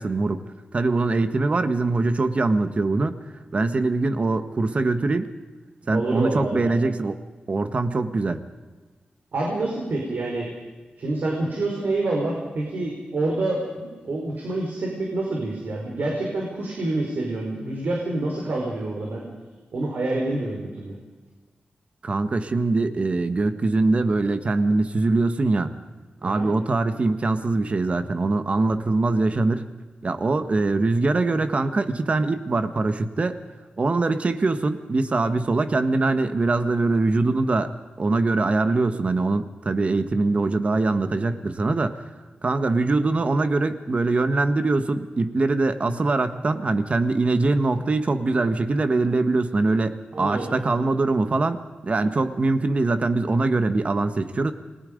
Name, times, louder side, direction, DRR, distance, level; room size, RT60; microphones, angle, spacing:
voice 1, 0.0-3.2 3.5-5.3 5.9-8.4 22.0-25.7 26.2-29.7 30.0-33.4 33.8-37.7 38.0-42.0 42.4-54.5, right 3 dB, 40° right, 10 dB, 1.4 m, -23 dB
voice 2, 5.9-6.8 9.3-10.5 11.0-19.2 19.7-20.9 26.2-26.5 50.1-50.6, right 2 dB, 75° right, -1 dB, 4.6 m, -27 dB
29.0 x 21.5 x 5.2 m, 1.3 s
wide cardioid pair, 135°, 3 cm